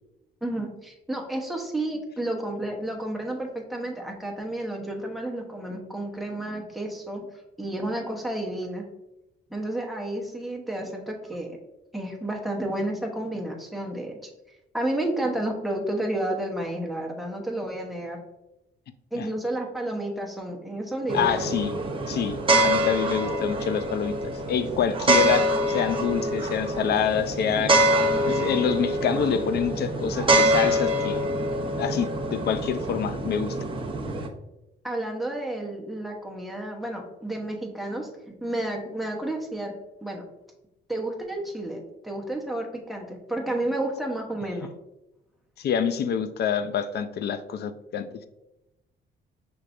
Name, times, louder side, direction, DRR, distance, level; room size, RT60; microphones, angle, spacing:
voice 1, 0.4-7.3 7.6-8.8 9.5-11.6 11.9-14.3 14.7-18.2 19.1-21.4 34.8-39.7 40.0-40.2 40.9-44.7, right 1 dB, ahead, 0 dB, 1.0 m, -31 dB
voice 2, 21.1-21.7 22.1-22.4 22.6-24.1 24.5-27.8 28.2-31.2 31.8-33.6 45.6-48.1, left 7 dB, 55° left, 11 dB, 0.4 m, -26 dB
sound 1, 21.1-34.3, right 1 dB, 25° right, 0.7 m, -25 dB
5.9 x 3.2 x 2.5 m, 0.95 s
cardioid pair, 90°, 20 cm